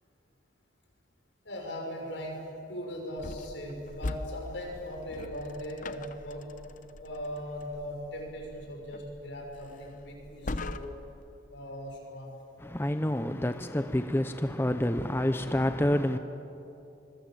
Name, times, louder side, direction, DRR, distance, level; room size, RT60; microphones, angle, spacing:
voice 1, 1.4-6.5 7.0-10.9 11.5-12.4, equal, 75° left, 6.0 m, -39 dB
sound 1, 3.2-11.2, left 2 dB, 45° left, 0.8 m, -42 dB
voice 2, 12.6-16.2, left 1 dB, 10° left, 0.7 m, -28 dB
26.0 x 22.0 x 7.8 m
head